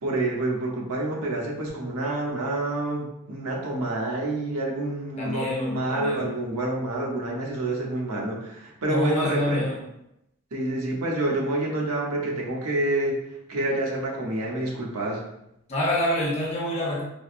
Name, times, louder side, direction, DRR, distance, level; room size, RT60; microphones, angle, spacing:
voice 1, 0.0-9.6 10.5-13.2 13.5-15.2, right 2 dB, 90° right, -2 dB, 0.9 m, -28 dB
voice 2, 5.2-6.3 8.9-9.8 15.7-17.0, left 1 dB, 30° left, -4 dB, 0.7 m, -27 dB
4.8 x 2.0 x 2.5 m, 0.81 s
head